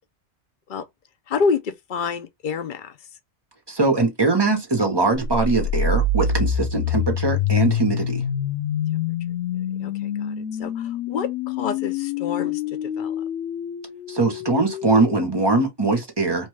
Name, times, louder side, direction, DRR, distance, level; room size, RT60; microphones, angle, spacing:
voice 1, 1.3-3.0 8.9-9.0 9.8-13.1, left 5 dB, 55° left, 0.6 m, -28 dB
voice 2, 3.7-8.2 14.1-16.5, right 3 dB, 25° right, 0.7 m, -21 dB
sound 1, 5.3-15.2, left 5 dB, 85° left, 1.0 m, -26 dB
3.1 x 2.2 x 3.1 m
omnidirectional pair, 1.2 m